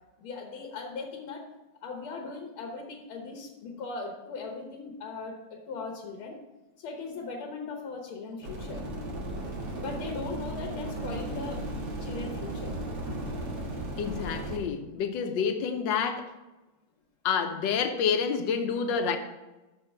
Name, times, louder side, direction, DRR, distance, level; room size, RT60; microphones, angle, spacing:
voice 1, 0.2-1.4 1.8-6.4 6.8-8.8 9.8-11.6 12.0-12.8, left 4 dB, 85° left, 1 dB, 1.8 m, -39 dB
sound 1, 8.4-14.6, right 1 dB, 55° right, 2.0 m, -35 dB
voice 2, 14.0-16.3 17.2-19.2, left 6 dB, 70° left, 6 dB, 1.4 m, -28 dB
6.3 x 5.1 x 7.0 m, 1.1 s
omnidirectional pair, 2.3 m